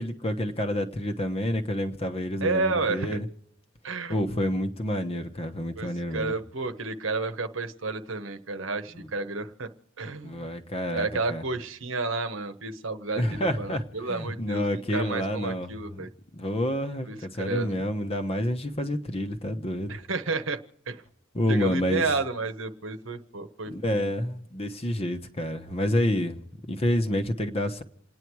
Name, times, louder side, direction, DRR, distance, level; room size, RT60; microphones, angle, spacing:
voice 1, 0.0-3.3 4.1-6.4 8.9-9.1 10.2-11.4 13.1-16.0 16.3-20.0 21.3-22.1 23.7-26.4 26.7-27.8, equal, 30° left, 1.0 m, -28 dB
voice 2, 2.4-3.1 3.8-4.2 5.8-9.7 10.0-10.4 10.9-16.1 17.1-17.8 19.9-20.6 20.9-21.0 21.5-24.0, right 3 dB, 70° right, 1.1 m, -31 dB
28.5 x 9.8 x 4.7 m
head